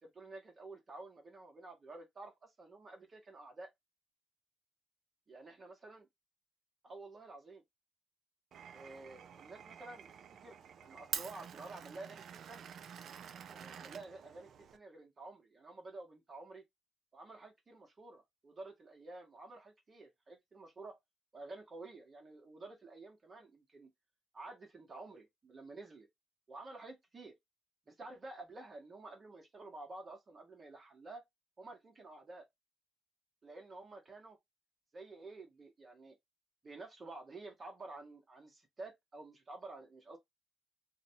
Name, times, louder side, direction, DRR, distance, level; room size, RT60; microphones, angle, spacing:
voice 1, 0.0-3.7 5.3-6.1 6.8-7.6 8.7-10.1 10.4-12.7 13.5-16.6 17.1-21.0 21.3-23.9 24.3-26.1 26.5-27.3 27.9-31.2 31.6-32.5 33.4-34.4 34.9-36.1 36.6-40.2, right 2 dB, 35° right, 0.8 m, -51 dB
Glass, 8.5-14.8, right 8 dB, 65° right, 0.3 m, -47 dB
2.6 x 2.1 x 2.6 m
cardioid pair, 90°, 0 cm